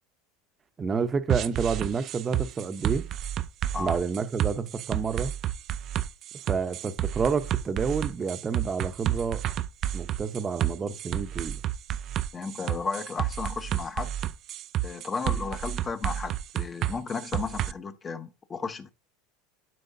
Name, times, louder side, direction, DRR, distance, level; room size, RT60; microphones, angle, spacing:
voice 1, 0.8-3.1 3.8-5.3 6.5-9.4 9.9-11.6, right 5 dB, 25° right, 0.8 m, -29 dB
sound 1, 1.3-17.7, right 12 dB, 45° right, 0.4 m, -30 dB
voice 2, 12.3-14.1 14.8-18.9, left 5 dB, 25° left, 1.0 m, -34 dB
12.0 x 4.6 x 2.7 m
hypercardioid pair, 100°, 0 cm